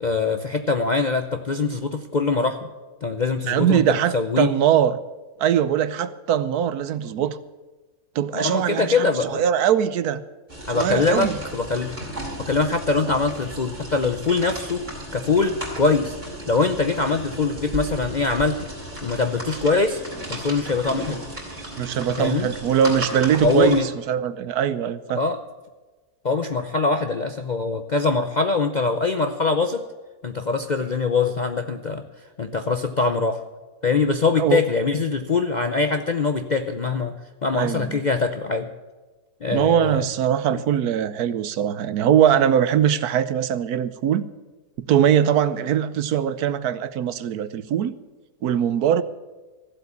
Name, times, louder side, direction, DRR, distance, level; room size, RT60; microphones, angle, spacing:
voice 1, 0.0-2.6 3.0-4.5 8.3-9.4 10.7-11.9 12.4-14.8 15.1-16.2 16.5-18.6 19.0-20.0 20.3-21.2 22.2-22.5 23.4-23.9 25.1-25.4 26.2-29.8 30.2-32.0 32.4-33.4 33.8-37.1 37.4-38.7 39.4-40.1 40.5-40.6, left 4 dB, 50° left, 7 dB, 0.5 m, -23 dB
voice 2, 3.5-5.0 5.4-7.4 8.1-10.2 10.7-11.3 13.0-13.1 21.8-25.2 34.4-34.6 37.5-38.0 39.5-44.3 44.9-47.9 48.4-49.0, right 9 dB, 75° right, 14 dB, 1.2 m, -21 dB
sound 1, 10.5-23.8, right 1 dB, 30° right, 4.0 m, -35 dB
14.5 x 8.1 x 8.4 m, 1.2 s
omnidirectional pair, 1.6 m